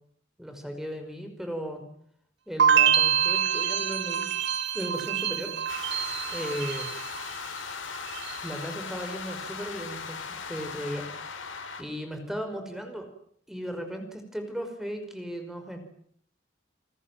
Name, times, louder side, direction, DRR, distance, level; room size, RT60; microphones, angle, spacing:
voice 1, 0.4-1.8 2.5-4.2 4.7-5.5 6.3-6.9 8.4-13.1 13.5-15.8, equal, ahead, 5 dB, 5.4 m, -36 dB
sound 1, 2.6-7.6 7.9-8.6, right 8 dB, 65° right, 2.3 m, -26 dB
sound 2, 5.7-11.8, left 5 dB, 80° left, 4.5 m, -38 dB
29.5 x 20.0 x 9.2 m, 0.65 s
head